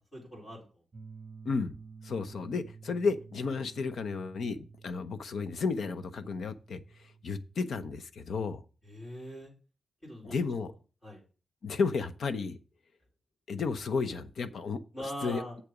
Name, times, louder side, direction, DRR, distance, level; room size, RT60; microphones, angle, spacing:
voice 1, 0.1-0.6 8.8-9.5 10.0-10.4 11.0-11.2 14.9-15.5, equal, 30° left, -4 dB, 4.2 m, -41 dB
sound 1, 0.9-7.6, right 5 dB, 25° right, 1.3 m, -52 dB
voice 2, 2.0-8.6 10.2-10.7 11.6-12.6 13.5-15.4, left 4 dB, 70° left, 12 dB, 0.8 m, -33 dB
7.5 x 6.8 x 4.9 m, 0.36 s
wide cardioid pair, 180°, 0 cm